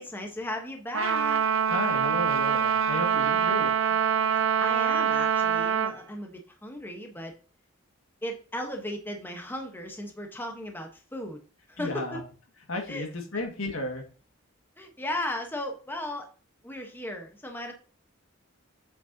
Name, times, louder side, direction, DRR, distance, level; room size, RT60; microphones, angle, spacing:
voice 1, 0.0-1.4 4.6-7.3 8.2-11.4 11.7-12.2 12.9-13.1 14.8-16.3 16.6-17.7, left 1 dB, 10° left, 3 dB, 1.2 m, -36 dB
Trumpet, 0.9-6.0, right 7 dB, 80° right, 1.1 m, -25 dB
voice 2, 1.7-4.0 11.8-12.2 12.7-14.1, left 2 dB, 90° left, 3 dB, 2.0 m, -33 dB
7.9 x 6.3 x 2.9 m, 0.37 s
head